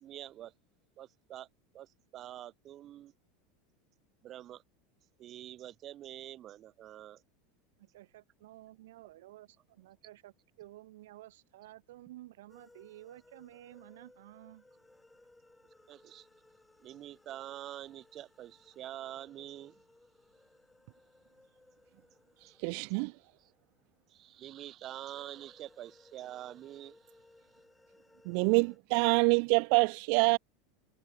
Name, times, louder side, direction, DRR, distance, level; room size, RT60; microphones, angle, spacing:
voice 1, 0.0-0.5 1.0-1.5 1.7-3.1 4.2-4.6 5.2-7.2 15.9-16.3 16.8-19.8 23.4-23.5 24.1-27.2, right 12 dB, 30° right, 1.1 m, -46 dB
voice 2, 7.8-14.7, right 16 dB, 85° right, 1.9 m, -53 dB
sound 1, 12.5-24.3 25.0-28.8, left 2 dB, 5° left, 3.5 m, -63 dB
voice 3, 22.6-23.1 28.3-30.4, right 40 dB or more, 55° right, 0.4 m, -26 dB
supercardioid pair, 160°, 0 cm